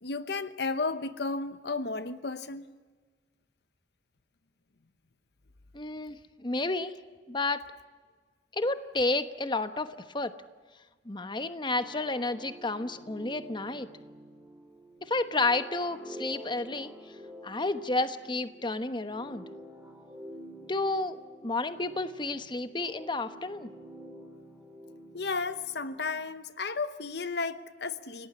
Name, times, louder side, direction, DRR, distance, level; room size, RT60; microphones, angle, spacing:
voice 1, 0.0-2.7 25.1-28.3, left 4 dB, 65° left, 12 dB, 1.0 m, -33 dB
voice 2, 5.7-7.0 7.3-7.6 8.5-10.4 11.1-13.9 15.0-16.9 17.4-19.5 20.7-21.2 21.4-23.7, left 2 dB, 25° left, 10 dB, 1.1 m, -31 dB
sound 1, 11.7-26.3, equal, 10° right, 3.1 m, -48 dB
29.0 x 18.0 x 9.8 m, 1.4 s
head